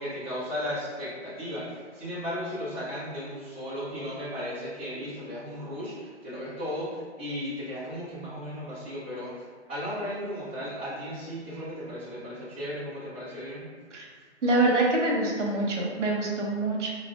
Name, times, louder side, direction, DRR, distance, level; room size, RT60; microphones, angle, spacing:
voice 1, 0.0-13.7, equal, 10° right, -15 dB, 0.6 m, -35 dB
voice 2, 14.4-16.9, right 2 dB, 85° right, -2 dB, 0.9 m, -25 dB
4.9 x 2.1 x 2.4 m, 1.5 s
hypercardioid pair, 165°, 35 cm